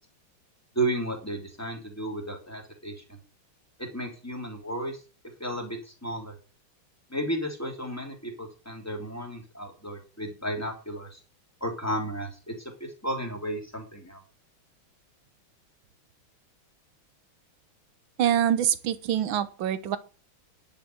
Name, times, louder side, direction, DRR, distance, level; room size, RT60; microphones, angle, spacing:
voice 1, 0.7-3.2 3.8-5.0 5.4-6.3 7.1-11.2 11.6-12.5 12.8-14.2, right 1 dB, 5° left, 0 dB, 3.2 m, -33 dB
voice 2, 18.2-20.0, right 10 dB, 75° right, 14 dB, 1.7 m, -25 dB
11.0 x 5.8 x 7.9 m, 0.35 s
omnidirectional pair, 2.3 m